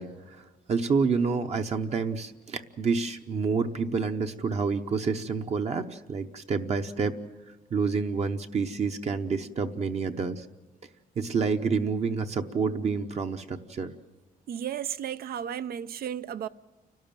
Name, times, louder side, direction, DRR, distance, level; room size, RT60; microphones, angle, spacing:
voice 1, 0.0-7.1 7.7-10.5 11.2-13.9, right 5 dB, 45° right, 0.9 m, -28 dB
voice 2, 14.5-16.5, right 9 dB, 80° right, 0.7 m, -34 dB
29.5 x 12.5 x 9.0 m
wide cardioid pair, 160°, 15 cm